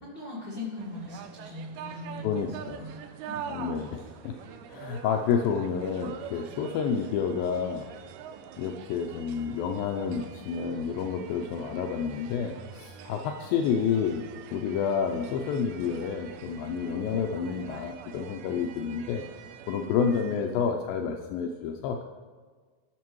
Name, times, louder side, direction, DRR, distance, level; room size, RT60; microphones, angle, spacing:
voice 1, 0.0-2.5 2.8-3.0 3.3-3.4, left 2 dB, 45° left, -7 dB, 1.5 m, -40 dB
sound 1, 0.8-20.6, right 8 dB, 80° right, 2.5 m, -45 dB
voice 2, 2.2-2.9 3.5-4.4 4.7-7.9 8.6-14.2 14.5-19.2 19.7-22.0, left 6 dB, 85° left, 3 dB, 2.1 m, -29 dB
18.5 x 6.6 x 3.1 m, 1.5 s
omnidirectional pair, 4.8 m